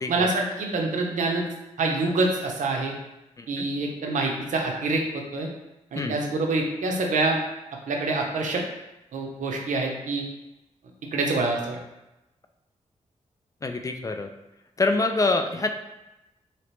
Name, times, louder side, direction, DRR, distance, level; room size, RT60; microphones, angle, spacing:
voice 1, 0.1-1.4 1.8-2.9 3.5-5.5 5.9-7.4 7.9-8.6 9.1-10.2 11.1-11.8, right 3 dB, 80° right, 1 dB, 0.6 m, -26 dB
voice 2, 3.4-3.7 5.9-6.1 13.6-14.3 14.8-15.7, left 3 dB, 25° left, 5 dB, 0.3 m, -25 dB
3.0 x 2.9 x 3.1 m, 0.95 s
cardioid pair, 85°, 13 cm